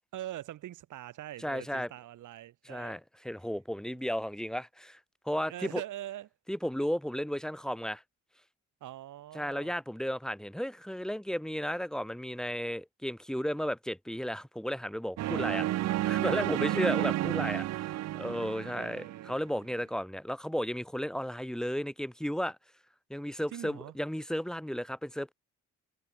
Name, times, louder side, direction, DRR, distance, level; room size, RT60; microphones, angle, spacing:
voice 1, 0.1-3.0 3.9-4.0 5.5-6.3 8.8-9.7 15.2-15.7 16.5-17.3 18.4-18.5 18.7-19.4 23.5-23.9, right 13 dB, 80° right, 7.9 m, -43 dB
voice 2, 1.4-1.9 2.6-5.0 5.2-5.8 6.5-8.0 9.3-15.6 16.1-22.6 23.1-25.3, equal, ahead, 1.4 m, -34 dB
sound 1, 15.2-19.4, right 15 dB, 60° right, 0.5 m, -31 dB
cardioid pair, 90°, 30 cm